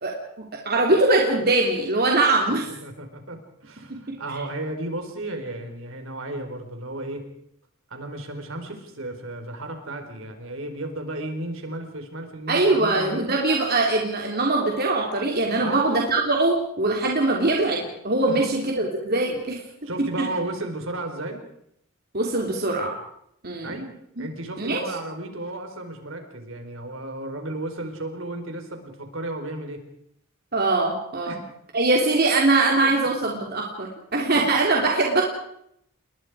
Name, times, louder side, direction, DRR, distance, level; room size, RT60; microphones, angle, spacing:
voice 1, 0.0-2.7 3.9-4.2 12.5-19.6 20.2-20.3 22.1-23.0 23.4-23.8 24.6-24.8 30.5-31.4 31.7-35.2, right 2 dB, 45° right, 0 dB, 3.4 m, -22 dB
voice 2, 2.8-7.2 7.9-13.3 15.6-15.8 18.3-18.7 19.8-21.4 23.6-23.9 24.2-29.8 31.2-31.4 32.8-32.9, right 1 dB, 65° right, 5 dB, 4.7 m, -34 dB
30.0 x 21.5 x 5.0 m, 0.74 s
head